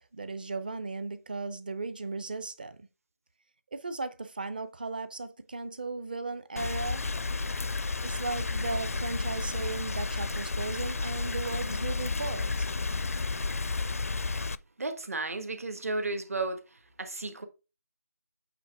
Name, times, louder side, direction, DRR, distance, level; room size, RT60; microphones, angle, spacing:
voice 1, 0.1-2.8 3.7-7.0 8.0-12.7, right 3 dB, 30° right, 0.7 m, -36 dB
Rain, 6.6-14.6, left 3 dB, 50° left, 0.4 m, -32 dB
voice 2, 14.8-17.4, right 3 dB, 50° right, 1.5 m, -34 dB
8.5 x 3.0 x 4.8 m
figure-of-eight pair, 170°, 10 cm